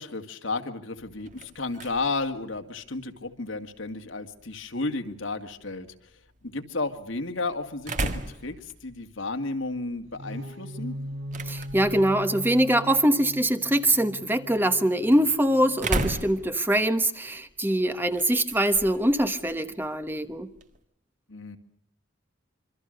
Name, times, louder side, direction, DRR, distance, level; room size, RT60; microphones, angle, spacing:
voice 1, 0.0-5.9 6.4-11.0 21.3-21.6, left 3 dB, 70° left, 7 dB, 2.2 m, -33 dB
sound 1, 1.0-20.8, right 2 dB, 35° right, 1.8 m, -39 dB
sound 2, 10.0-16.0, equal, 65° right, 3.9 m, -39 dB
voice 2, 11.4-20.5, right 1 dB, 10° right, 9 dB, 1.1 m, -23 dB
26.5 x 24.5 x 6.6 m, 0.68 s
head